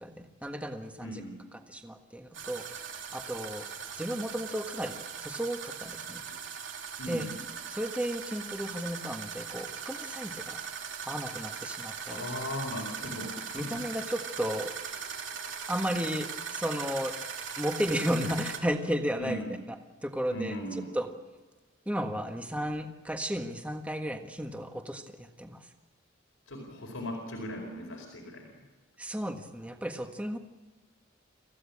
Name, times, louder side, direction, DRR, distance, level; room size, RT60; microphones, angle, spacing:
voice 1, 0.0-1.2 1.7-2.6 3.1-3.6 4.0-6.2 7.1-7.3 7.7-10.6 11.1-12.2 13.5-14.7 15.7-17.1 17.6-19.4 20.0-20.6 20.9-21.1 21.8-25.7 29.0-30.4, equal, 5° right, 5 dB, 1.5 m, -34 dB
voice 2, 1.0-1.5 7.0-7.4 12.1-14.0 19.2-19.5 20.3-20.9 26.5-28.6, equal, 90° left, 0 dB, 4.6 m, -38 dB
sound 1, 2.3-18.6, right 6 dB, 75° right, 3.0 m, -39 dB
27.0 x 15.5 x 8.6 m, 1.3 s
head